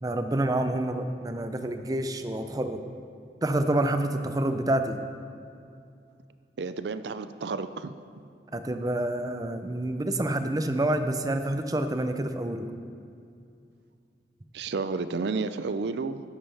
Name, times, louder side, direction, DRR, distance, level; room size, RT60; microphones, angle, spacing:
voice 1, 0.0-2.8 3.4-5.0 8.5-12.7, right 1 dB, 20° right, 8 dB, 0.5 m, -28 dB
voice 2, 6.6-7.9 14.5-16.2, right 4 dB, 70° right, 12 dB, 0.5 m, -31 dB
12.5 x 11.0 x 3.4 m, 2.4 s
head